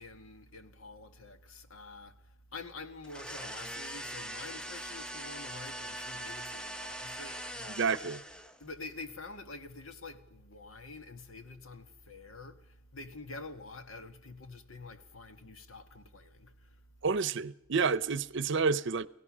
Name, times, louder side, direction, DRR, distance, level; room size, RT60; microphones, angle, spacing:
voice 1, 0.0-8.0 8.6-17.2, left 3 dB, 85° left, 1.7 m, -47 dB
sound 1, 3.0-8.7, equal, 5° left, 0.8 m, -42 dB
voice 2, 7.8-8.2 17.0-19.1, right 5 dB, 60° right, 0.7 m, -29 dB
29.5 x 16.5 x 6.2 m
head